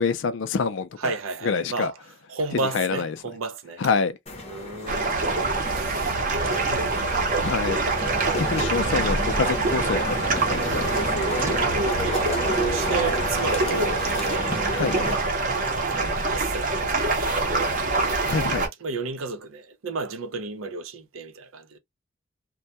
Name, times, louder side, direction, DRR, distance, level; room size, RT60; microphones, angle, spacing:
voice 1, 0.0-1.1 1.4-1.9 2.5-3.1 3.8-4.2 6.7-6.8 7.4-7.8 8.3-11.2 14.7-14.9 18.2-18.7, left 5 dB, 70° left, 0.4 m, -27 dB
voice 2, 1.0-3.8 4.5-7.4 10.6-11.0 11.4-17.6 18.8-21.8, right 3 dB, 90° right, 0.5 m, -33 dB
sound 1, 4.3-15.2, equal, 30° left, 0.6 m, -32 dB
sound 2, 4.9-18.7, right 3 dB, 40° right, 0.7 m, -25 dB
sound 3, 7.9-14.2, right 1 dB, 15° right, 0.4 m, -37 dB
2.2 x 2.2 x 2.7 m
head